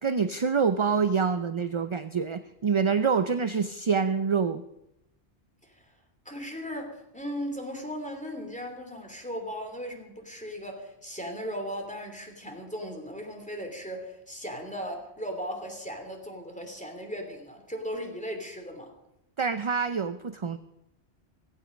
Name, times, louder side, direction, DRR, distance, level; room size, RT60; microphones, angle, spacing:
voice 1, 0.0-4.6 19.4-20.6, right 5 dB, 40° right, 10 dB, 0.5 m, -26 dB
voice 2, 6.2-18.9, equal, 5° left, 3 dB, 3.0 m, -37 dB
16.5 x 16.0 x 5.2 m, 0.85 s
omnidirectional pair, 1.1 m